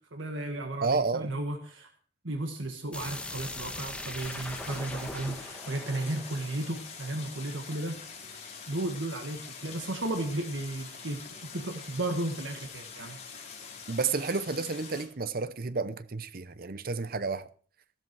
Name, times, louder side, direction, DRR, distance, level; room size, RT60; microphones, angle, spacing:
voice 1, 0.1-1.9 2.2-8.0 8.7-11.2 11.5-13.2, right 2 dB, 80° right, 1.7 m, -34 dB
voice 2, 0.8-1.3 13.9-17.5, right 4 dB, 50° right, 0.7 m, -31 dB
sound 1, 2.9-7.6, left 1 dB, 5° left, 1.6 m, -41 dB
Stream, 4.2-15.0, left 5 dB, 35° left, 4.1 m, -45 dB
15.0 x 13.0 x 4.7 m
head